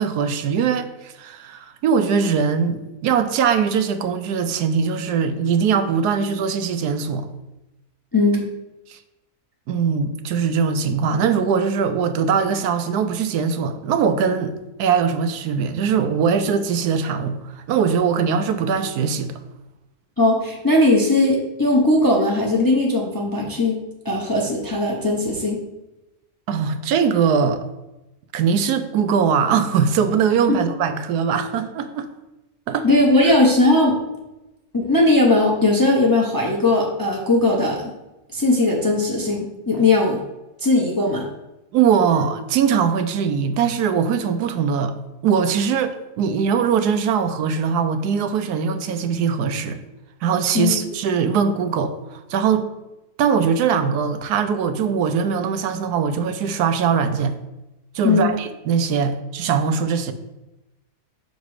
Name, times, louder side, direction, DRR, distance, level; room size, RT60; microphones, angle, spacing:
voice 1, 0.0-7.3 8.9-9.0 9.7-14.5 14.8-19.3 26.5-27.7 28.3-32.1 32.7-32.9 33.2-33.3 41.7-44.9 45.2-49.8 50.2-52.6 53.2-57.3 57.9-60.1, right 6 dB, 80° right, 9 dB, 1.2 m, -21 dB
voice 2, 8.1-8.5 20.2-23.8 24.0-25.6 30.5-30.6 32.8-34.0 34.7-37.8 38.3-40.2 40.6-41.2 50.5-50.7 58.0-58.3, left 2 dB, 20° left, -2 dB, 0.6 m, -18 dB
6.1 x 4.0 x 4.8 m, 0.97 s
omnidirectional pair, 1.7 m